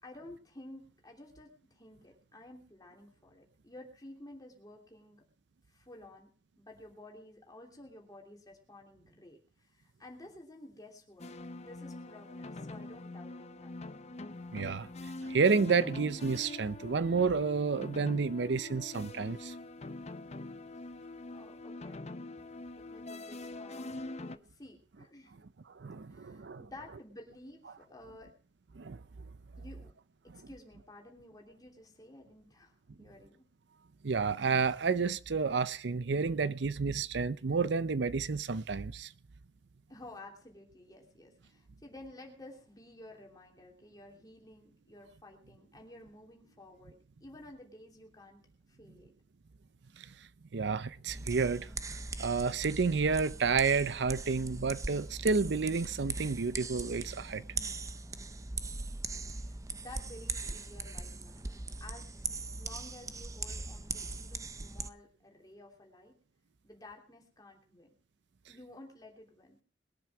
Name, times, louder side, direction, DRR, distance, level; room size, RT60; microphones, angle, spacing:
voice 1, 0.0-5.2 5.7-6.3 6.6-13.7 21.3-22.0 22.8-25.4 26.1-28.3 29.6-29.9 30.2-33.5 39.9-48.4 48.7-49.1 58.7-61.5 61.8-62.2 62.5-66.2 66.6-67.9 68.5-69.6, left 1 dB, 20° left, 3.0 m, -53 dB
sound 1, 11.2-24.4, left 2 dB, 35° left, 0.7 m, -44 dB
voice 2, 14.5-14.9 15.2-19.5 25.7-26.6 28.8-29.0 34.0-39.1 50.0-50.1 50.5-51.7 52.2-57.4, right 4 dB, 70° right, 0.6 m, -30 dB
sound 2, 51.1-64.9, right 3 dB, 15° right, 0.6 m, -40 dB
21.0 x 7.6 x 6.0 m
head